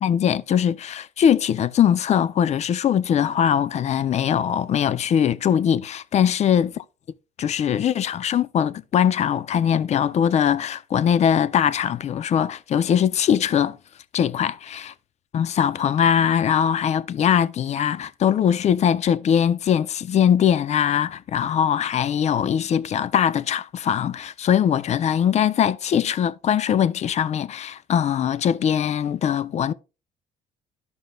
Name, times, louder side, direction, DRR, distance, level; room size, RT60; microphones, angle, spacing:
voice 1, 0.0-6.7 7.4-13.8 14.1-14.5 15.3-29.7, left 9 dB, 40° left, 0.5 m, -21 dB
13.5 x 5.3 x 2.2 m
cardioid pair, 110°, 17 cm